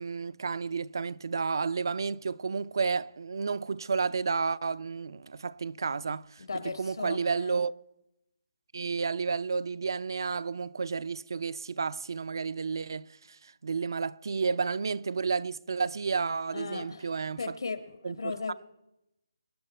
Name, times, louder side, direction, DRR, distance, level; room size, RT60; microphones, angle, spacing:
voice 1, 0.0-7.7 8.7-17.5 18.0-18.5, right 5 dB, 65° right, 0.5 m, -31 dB
voice 2, 6.4-7.6 16.5-17.1 17.4-18.5, left 4 dB, 80° left, 1.8 m, -37 dB
25.5 x 10.5 x 4.3 m
hypercardioid pair, 165°, 2 cm